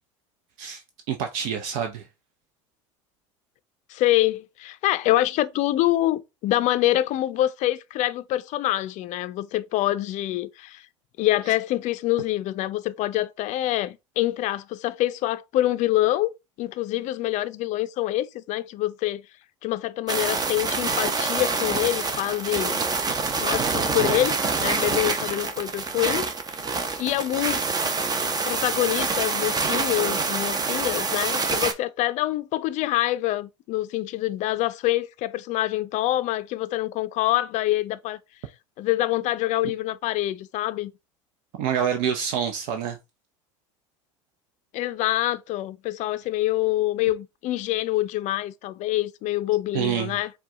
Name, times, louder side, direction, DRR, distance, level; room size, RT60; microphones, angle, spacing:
voice 1, 1.1-2.1 41.6-43.0 49.7-50.2, right 8 dB, 60° right, 0.6 m, -27 dB
voice 2, 3.9-10.9 11.2-16.3 16.6-19.2 19.6-22.8 23.4-26.3 26.5-26.7 27.0-27.6 28.4-38.2 38.8-40.9 44.7-50.3, left 15 dB, 50° left, 0.5 m, -25 dB
sound 1, 20.1-31.7, right 4 dB, 25° right, 0.7 m, -26 dB
4.6 x 2.3 x 3.6 m
hypercardioid pair, 80°, 16 cm